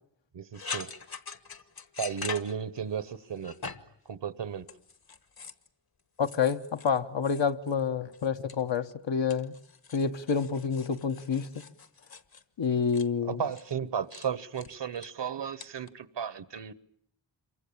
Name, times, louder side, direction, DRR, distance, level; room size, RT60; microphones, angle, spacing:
voice 1, 0.3-1.0 2.0-3.6 4.0-4.7 13.2-16.7, right 7 dB, 70° right, 1.2 m, -34 dB
sound 1, 0.5-3.0 3.4-4.0 4.6-5.7 6.2-7.8 8.1-8.9 9.3-13.1 13.5-13.7 14.1-14.3 14.5-15.1 15.6-15.9, left 4 dB, 55° left, 1.4 m, -43 dB
voice 2, 6.2-9.5 9.9-11.5 12.6-13.4, left 6 dB, 75° left, 1.3 m, -28 dB
27.0 x 24.0 x 8.7 m
wide cardioid pair, 90°, 44 cm